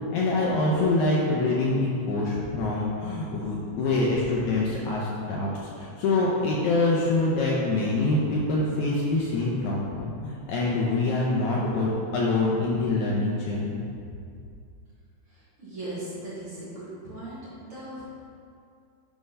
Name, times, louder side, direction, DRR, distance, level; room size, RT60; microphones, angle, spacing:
voice 1, 0.1-13.8, left 2 dB, 75° left, -4 dB, 1.9 m, -25 dB
voice 2, 15.3-18.0, right 1 dB, 50° right, -10 dB, 2.0 m, -38 dB
9.6 x 3.5 x 5.5 m, 2.4 s
omnidirectional pair, 4.1 m